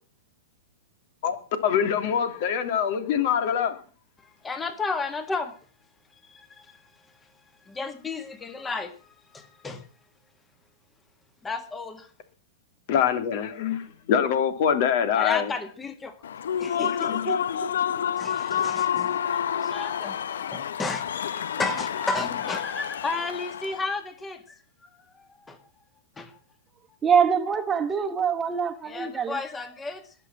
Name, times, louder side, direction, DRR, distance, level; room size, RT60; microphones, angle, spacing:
voice 1, 1.6-3.7 12.9-15.5 16.8-17.2, left 8 dB, 55° left, 3.0 m, -24 dB
voice 2, 4.2-5.5 6.2-6.8 7.6-9.9 11.4-12.1 15.1-16.2 16.6-20.2 20.5-25.6 26.2-26.4 28.8-30.1, left 3 dB, 15° left, 1.9 m, -33 dB
Human voice / Cheering / Applause, 16.2-23.9, left 8 dB, 80° left, 0.8 m, -29 dB
voice 3, 27.0-29.3, right 7 dB, 20° right, 1.4 m, -24 dB
20.5 x 6.8 x 7.6 m
hypercardioid pair, 120°, 0 cm